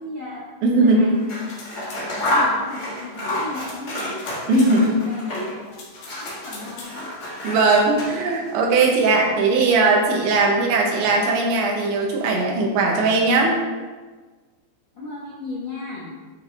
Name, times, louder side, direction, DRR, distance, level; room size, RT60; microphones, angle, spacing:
voice 1, 0.0-1.4 1.8-4.2 4.6-5.7 6.1-7.5 14.9-16.1, left 2 dB, 70° left, -8 dB, 1.0 m, -35 dB
voice 2, 0.6-1.1 4.5-5.0 7.4-13.6, right 3 dB, 80° right, -1 dB, 3.7 m, -19 dB
Scissors, 1.1-5.7 5.9-8.5, left 1 dB, 35° left, 1.6 m, -29 dB
sound 1, 1.5-2.4 3.6-4.7 5.7-7.0, left 3 dB, 55° left, 2.4 m, -41 dB
10.5 x 6.2 x 3.6 m, 1.4 s
omnidirectional pair, 5.1 m